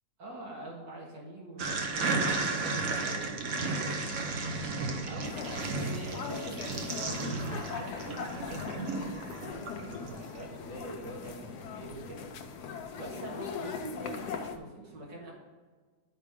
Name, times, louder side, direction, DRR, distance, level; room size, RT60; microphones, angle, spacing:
voice 1, 0.2-4.0 5.1-8.9 9.8-12.3 13.0-15.3, right 2 dB, 85° right, -4 dB, 2.5 m, -44 dB
sound 1, 1.6-10.2, right 3 dB, 60° right, 1.2 m, -34 dB
sound 2, 5.2-14.6, left 6 dB, 70° left, 1.2 m, -40 dB
12.0 x 4.7 x 3.7 m, 1.4 s
omnidirectional pair, 1.9 m